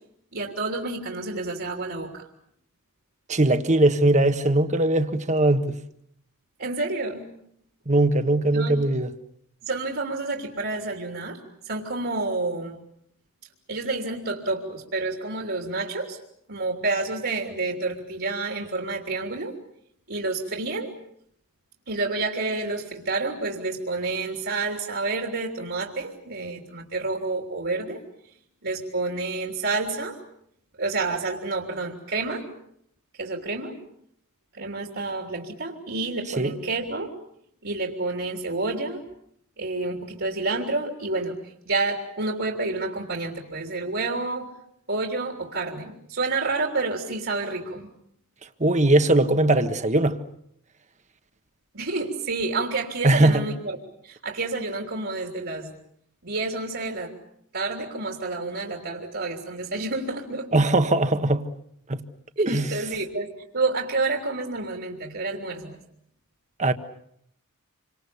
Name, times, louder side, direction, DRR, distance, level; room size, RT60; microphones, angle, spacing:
voice 1, 0.3-2.2 6.6-7.3 8.5-8.8 9.6-11.4 11.6-12.8 13.7-16.2 16.5-19.6 20.1-20.9 21.9-28.0 28.6-30.2 30.8-32.5 33.2-33.8 34.5-37.2 37.6-39.0 39.6-44.6 44.9-47.9 51.7-53.8 54.0-55.7 56.2-57.1 57.5-60.5 62.4-65.8, right 3 dB, 60° right, 3.4 m, -29 dB
voice 2, 3.3-5.8 7.9-9.1 36.4-36.5 48.6-50.2 53.0-53.4 60.5-61.4 61.9-62.0 62.4-62.8 66.6-66.7, right 2 dB, 35° right, 1.4 m, -20 dB
28.5 x 25.5 x 7.1 m
head